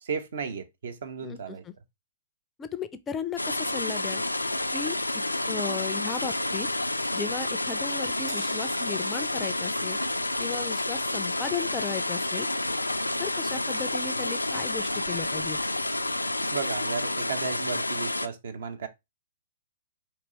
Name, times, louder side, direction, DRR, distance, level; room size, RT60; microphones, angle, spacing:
voice 1, 0.0-1.6 16.5-18.9, right 5 dB, 60° right, 0.8 m, -34 dB
voice 2, 1.2-1.7 2.6-4.2 4.7-6.7 7.1-10.0 10.4-12.5 13.2-15.6, left 6 dB, 15° left, 0.4 m, -36 dB
sound 1, 3.4-18.3, left 2 dB, 85° left, 0.3 m, -29 dB
Crash cymbal, 13.9-14.9 15.2-15.5 16.5-16.6, right 7 dB, 35° right, 1.4 m, -53 dB
4.6 x 2.9 x 4.0 m
figure-of-eight pair, 115°, 0 cm